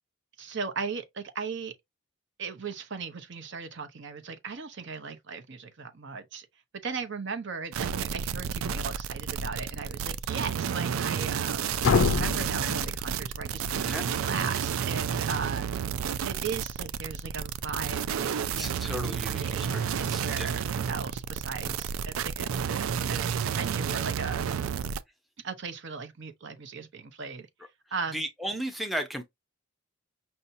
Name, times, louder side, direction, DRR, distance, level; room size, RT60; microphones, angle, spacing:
voice 1, 0.4-1.7 2.4-6.5 6.8-11.7 12.1-15.7 16.2-19.6 19.9-24.7 25.4-27.5 27.9-28.2, right 5 dB, 55° right, 0.7 m, -37 dB
sound 1, 7.7-25.0, right 7 dB, 75° right, 0.4 m, -31 dB
sound 2, 11.8-13.7, left 4 dB, 80° left, 0.5 m, -26 dB
voice 2, 18.6-20.5 28.1-29.2, equal, ahead, 0.5 m, -35 dB
5.5 x 2.7 x 2.6 m
head